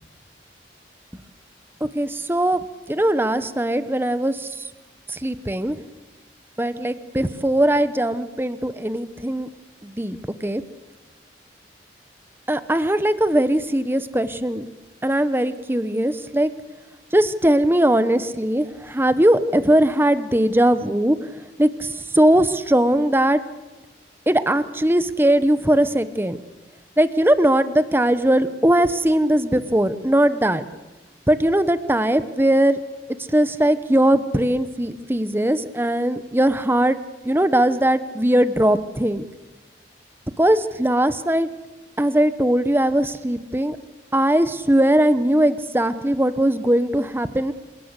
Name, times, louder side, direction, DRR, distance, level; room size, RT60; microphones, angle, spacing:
voice 1, 1.8-2.6 2.9-4.5 5.1-5.8 6.6-9.5 9.8-10.2 10.4-10.6 12.5-14.7 15.0-16.5 17.1-21.2 21.6-23.4 24.3-26.4 27.0-30.6 31.3-32.8 33.3-37.0 37.2-39.2 40.4-41.5 42.0-43.8 44.1-47.5, right 1 dB, 10° right, 12 dB, 0.9 m, -20 dB
27.0 x 18.0 x 8.2 m, 1.1 s
head